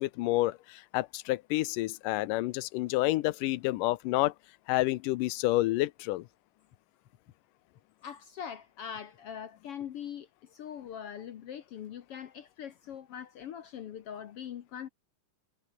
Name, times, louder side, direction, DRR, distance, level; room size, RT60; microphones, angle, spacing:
voice 1, 0.0-4.3 4.7-6.3, left 18 dB, 80° left, 2.2 m, -29 dB
voice 2, 8.0-14.9, left 9 dB, 65° left, 1.5 m, -42 dB
omnidirectional pair, 3.9 m